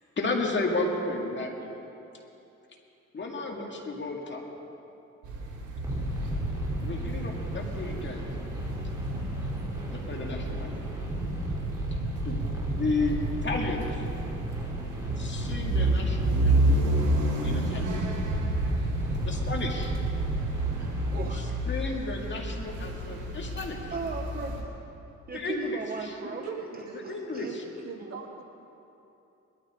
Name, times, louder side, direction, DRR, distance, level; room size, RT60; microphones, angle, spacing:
voice 1, 0.2-1.5 3.1-4.4 6.8-8.3 9.9-10.9 12.2-12.4 12.8-14.0 15.2-16.9 17.4-18.0 19.2-20.0 21.3-23.9 25.3-26.1 27.1-27.6, left 3 dB, 40° left, 0 dB, 2.1 m, -33 dB
sound 1, 5.2-24.6, right 1 dB, 85° right, 2.4 m, -31 dB
sound 2, 5.8-21.2, right 1 dB, 10° right, 3.2 m, -34 dB
voice 2, 20.8-21.8 23.4-23.6 23.9-24.8 25.3-26.4 27.0-28.2, right 4 dB, 30° right, 2 dB, 1.0 m, -38 dB
voice 3, 26.2-27.1 27.4-28.4, right 5 dB, 55° right, 0 dB, 2.4 m, -41 dB
21.0 x 13.0 x 3.7 m, 2.9 s
cardioid pair, 90°, 30 cm